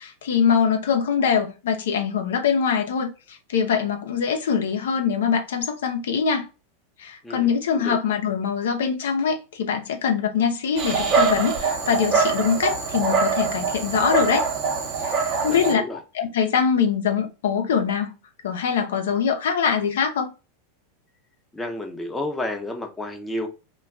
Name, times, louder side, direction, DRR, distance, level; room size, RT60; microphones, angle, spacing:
voice 1, 0.0-6.5 7.0-14.5 15.0-15.8 16.1-18.1 18.4-20.3, left 7 dB, 80° left, 0.6 m, -23 dB
Dog, 10.8-15.7, right 5 dB, 45° right, 0.8 m, -23 dB
voice 2, 15.5-16.0 21.5-23.5, left 1 dB, 10° left, 0.6 m, -31 dB
2.2 x 2.2 x 3.5 m
hypercardioid pair, 110°, 0 cm